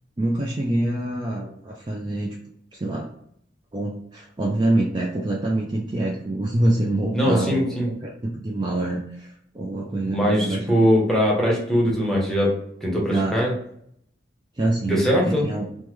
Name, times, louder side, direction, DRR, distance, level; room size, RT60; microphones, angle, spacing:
voice 1, 0.2-2.4 2.7-3.1 3.7-7.7 8.0-10.7 13.1-13.4 14.6-15.7, right 1 dB, 25° right, -2 dB, 0.3 m, -25 dB
voice 2, 7.1-7.9 10.1-12.5 12.8-13.5 14.8-15.4, equal, ahead, -3 dB, 0.8 m, -21 dB
3.1 x 2.1 x 3.3 m, 0.69 s
head